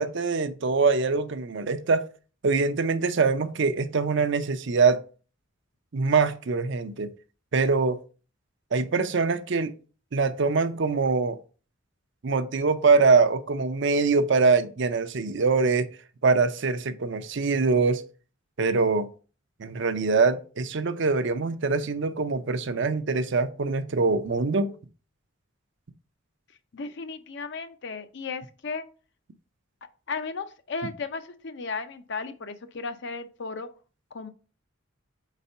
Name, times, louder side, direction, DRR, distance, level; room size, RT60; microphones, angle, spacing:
voice 1, 0.0-2.1 2.4-5.0 5.9-7.1 7.5-8.0 8.7-9.7 10.1-11.4 12.2-15.9 16.2-18.0 18.6-19.1 19.6-24.7, right 4 dB, 60° right, 0.6 m, -23 dB
voice 2, 26.7-28.9 29.8-33.7 34.1-34.3, left 4 dB, 60° left, 0.6 m, -35 dB
4.4 x 4.1 x 5.4 m
head